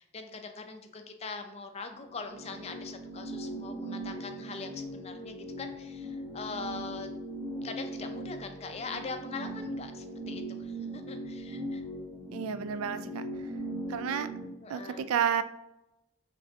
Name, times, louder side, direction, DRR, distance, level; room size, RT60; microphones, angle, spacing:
voice 1, 0.0-7.1 7.6-11.8 14.6-15.1, left 4 dB, 30° left, 6 dB, 0.4 m, -42 dB
sound 1, 1.9-14.5, right 1 dB, 25° right, 0.9 m, -39 dB
voice 2, 12.3-13.2 13.9-14.3 14.7-15.4, right 8 dB, 85° right, 11 dB, 0.3 m, -30 dB
4.7 x 3.3 x 2.7 m, 0.90 s
head